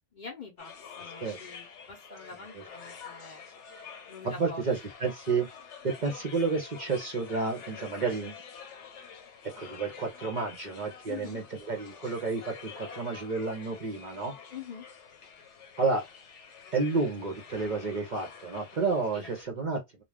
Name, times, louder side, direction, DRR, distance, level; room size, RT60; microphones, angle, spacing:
voice 1, 0.1-3.4 4.1-4.6 11.0-11.4 14.5-14.9 19.1-19.3, left 5 dB, 50° left, 0.6 m, -44 dB
sound 1, 0.6-19.4, left 6 dB, 70° left, 1.0 m, -47 dB
voice 2, 4.2-5.5 5.8-8.3 9.6-14.3 15.8-16.0 16.7-19.8, right 4 dB, 50° right, 0.6 m, -30 dB
2.3 x 2.2 x 3.3 m
omnidirectional pair, 1.3 m